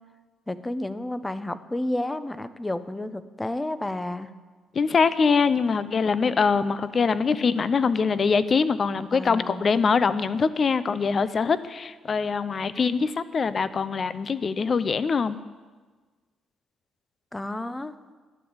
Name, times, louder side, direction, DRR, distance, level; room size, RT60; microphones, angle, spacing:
voice 1, 0.5-4.3 9.1-9.6 17.3-18.0, left 1 dB, 15° left, 13 dB, 0.7 m, -31 dB
voice 2, 4.7-15.4, left 5 dB, 45° left, 14 dB, 0.6 m, -23 dB
11.5 x 7.3 x 9.6 m, 1.4 s
cardioid pair, 90°, 0 cm